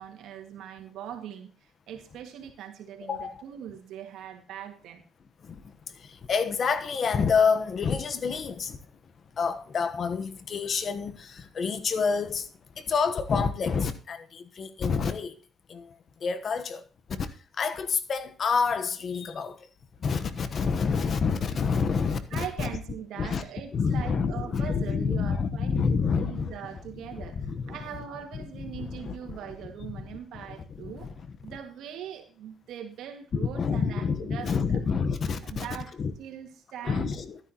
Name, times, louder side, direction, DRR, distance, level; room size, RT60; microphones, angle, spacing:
voice 1, 0.0-5.0 22.3-31.1 31.4-34.8 35.4-35.9 36.2-37.2, right 9 dB, 80° right, 2.0 m, -41 dB
voice 2, 3.0-3.3 6.3-8.8 9.4-12.4 12.9-15.3 15.7-15.9 16.2-16.8 17.6-19.5 20.0-22.7 23.2-23.4 23.7-26.6 27.2-27.8 28.3-28.4 28.8-29.4 30.8-31.1 33.3-35.7 36.0-36.1 36.8-37.4, left 5 dB, 50° left, 1.1 m, -28 dB
12.0 x 10.0 x 3.0 m
cardioid pair, 90°, 0 cm